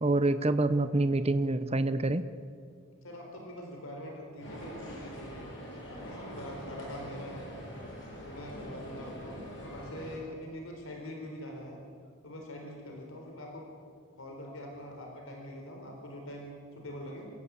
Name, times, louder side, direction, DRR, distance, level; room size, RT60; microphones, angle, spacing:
voice 1, 0.0-2.2, right 2 dB, 30° right, 11 dB, 0.8 m, -26 dB
voice 2, 3.0-5.5 5.9-7.5 8.2-11.8 12.2-13.7 14.2-17.3, equal, 75° left, 1 dB, 4.1 m, -43 dB
sound 1, 4.4-10.2, equal, 60° left, 7.3 m, -44 dB
28.0 x 15.5 x 8.2 m, 2.1 s
head